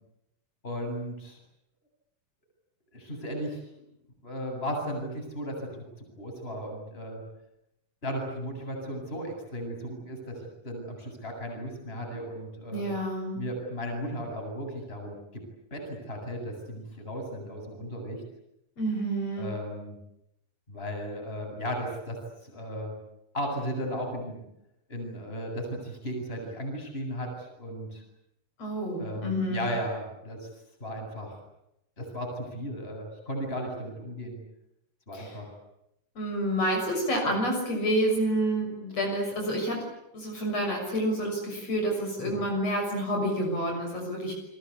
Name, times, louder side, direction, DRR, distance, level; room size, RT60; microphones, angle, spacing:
voice 1, 0.6-1.4 2.9-3.8 4.2-7.2 8.0-12.9 13.3-15.4 15.7-18.2 19.4-20.0 20.7-22.9 23.3-24.4 24.9-28.0 29.0-30.5 30.8-31.4 32.0-34.4 35.1-35.5 38.9-39.0, equal, 15° left, 2 dB, 8.2 m, -35 dB
voice 2, 12.7-13.4 18.8-19.5 28.6-29.7 35.1-35.3 36.2-39.8 40.1-44.3, right 1 dB, 50° left, 1 dB, 7.4 m, -28 dB
29.0 x 22.5 x 8.5 m, 0.81 s
omnidirectional pair, 3.6 m